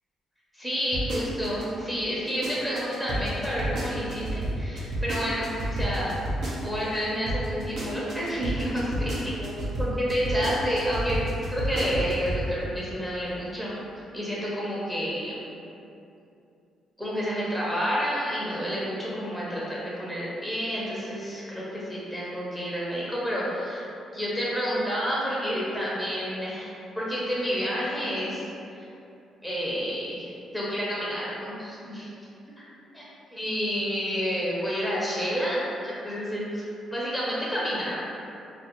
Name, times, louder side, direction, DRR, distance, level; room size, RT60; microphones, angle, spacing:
voice 1, 0.5-6.1 6.6-11.2 11.5-13.7 14.1-15.5 17.0-23.8 24.1-28.4 28.8-28.9 29.4-32.1 32.6-32.7 32.9-33.0 33.3-35.6 35.8-36.6 36.9-38.0, equal, ahead, -7 dB, 0.6 m, -29 dB
sound 1, 0.9-1.7 2.1-7.0 7.3-12.4 12.8-12.9, right 1 dB, 70° right, 0.5 m, -30 dB
2.3 x 2.1 x 2.9 m, 2.7 s
cardioid pair, 90°, 0 cm